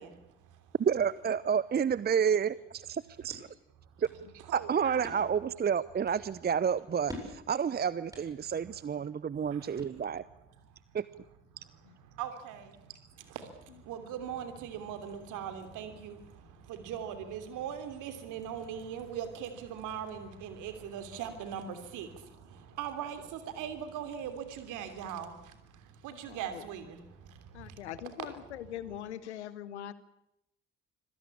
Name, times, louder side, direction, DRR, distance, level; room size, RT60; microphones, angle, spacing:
voice 1, 0.0-0.8 4.5-5.2 9.5-9.8 10.9-11.0 11.5-28.7, right 8 dB, 65° right, 3.2 m, -41 dB
voice 2, 0.8-3.5 4.0-4.1 4.5-10.2 10.9-11.1, right 7 dB, 30° right, 0.8 m, -30 dB
sound 1, 2.8-10.4, left 1 dB, 10° right, 7.9 m, -51 dB
voice 3, 26.3-26.6 27.5-29.9, left 11 dB, 80° left, 1.1 m, -42 dB
25.5 x 17.0 x 8.5 m
figure-of-eight pair, 45°, 34 cm